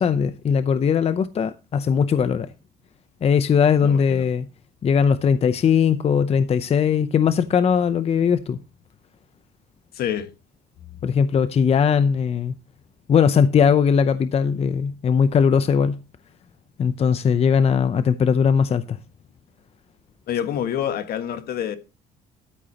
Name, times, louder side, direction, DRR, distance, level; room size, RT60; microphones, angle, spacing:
voice 1, 0.0-2.5 3.2-4.5 4.8-8.6 11.0-12.5 13.1-16.0 16.8-19.0, left 7 dB, 35° left, 0.6 m, -19 dB
voice 2, 3.8-4.2 9.9-10.3 10.9-11.0 20.3-21.8, left 9 dB, 65° left, 1.6 m, -27 dB
13.0 x 8.2 x 2.9 m
cardioid pair, 110°, 17 cm